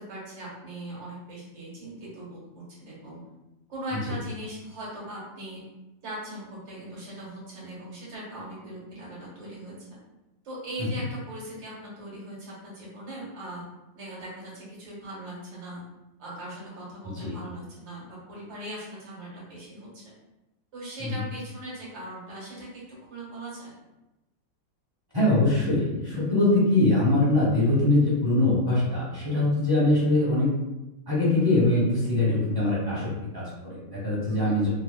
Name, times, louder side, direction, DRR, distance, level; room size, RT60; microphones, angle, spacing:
voice 1, 0.0-3.2 3.7-5.6 6.0-9.9 10.4-13.6 13.9-15.8 16.2-20.0 20.7-22.8 23.1-23.8 34.3-34.6, right 1 dB, 90° right, -6 dB, 2.0 m, -40 dB
voice 2, 17.0-17.4 21.0-21.2 25.1-30.5 31.1-34.7, left 2 dB, 20° right, -7 dB, 0.8 m, -23 dB
5.4 x 2.1 x 2.2 m, 0.99 s
omnidirectional pair, 2.0 m